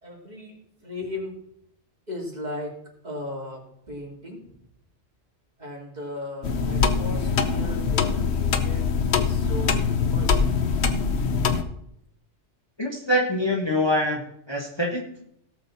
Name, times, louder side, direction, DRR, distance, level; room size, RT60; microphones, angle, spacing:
voice 1, 0.0-1.4 2.1-2.8 3.0-4.6 5.6-10.5, left 1 dB, 35° right, -3 dB, 3.0 m, -37 dB
sound 1, 6.4-11.6, left 5 dB, 65° left, 1.1 m, -23 dB
voice 2, 12.8-14.2 14.5-15.1, left 1 dB, 20° left, -1 dB, 1.4 m, -24 dB
17.0 x 6.7 x 4.1 m, 0.75 s
omnidirectional pair, 1.2 m